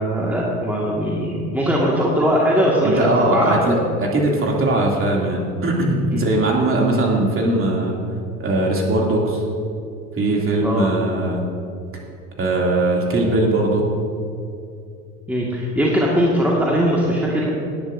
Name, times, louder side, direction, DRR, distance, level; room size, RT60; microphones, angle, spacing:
voice 1, 0.0-3.7 6.1-6.2 10.6-10.9 15.3-17.5, equal, 5° right, -4 dB, 1.9 m, -20 dB
voice 2, 2.8-8.0 8.4-9.4 10.1-11.4 12.4-13.8, right 2 dB, 30° right, -2 dB, 2.8 m, -20 dB
19.0 x 10.5 x 2.7 m, 2.5 s
figure-of-eight pair, 75°, 45 cm